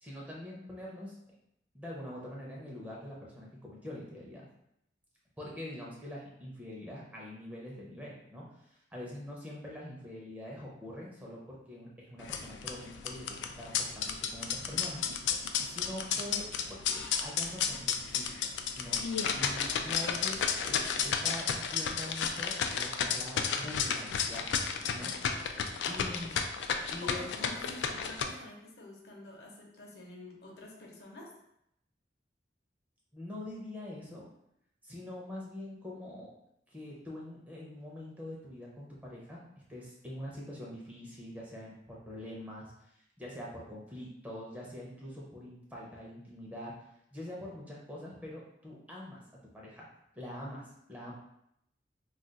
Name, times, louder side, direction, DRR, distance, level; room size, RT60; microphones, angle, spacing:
voice 1, 0.0-1.2 1.7-4.5 5.4-8.4 8.9-15.0 15.6-19.0 19.3-24.5 24.8-25.1 25.5-26.3 26.9-27.5 33.1-34.2 34.8-36.3 36.7-42.9 43.2-46.7 47.1-49.2 49.5-51.1, left 1 dB, 10° right, -4 dB, 0.6 m, -44 dB
sound 1, 12.2-28.2, left 7 dB, 85° left, 0.3 m, -33 dB
voice 2, 27.0-31.3, left 2 dB, 65° left, -1 dB, 0.7 m, -48 dB
2.4 x 2.3 x 3.9 m, 0.78 s
head